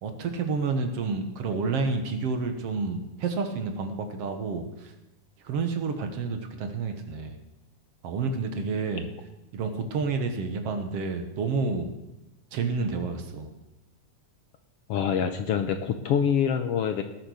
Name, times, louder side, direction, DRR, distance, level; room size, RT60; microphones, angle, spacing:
voice 1, 0.0-4.9 5.4-7.4 8.0-9.1 9.5-11.9 12.5-13.5, right 4 dB, 60° right, 6 dB, 2.2 m, -29 dB
voice 2, 14.9-17.0, left 7 dB, 70° left, 7 dB, 1.5 m, -25 dB
18.5 x 7.7 x 6.4 m, 0.99 s
omnidirectional pair, 3.4 m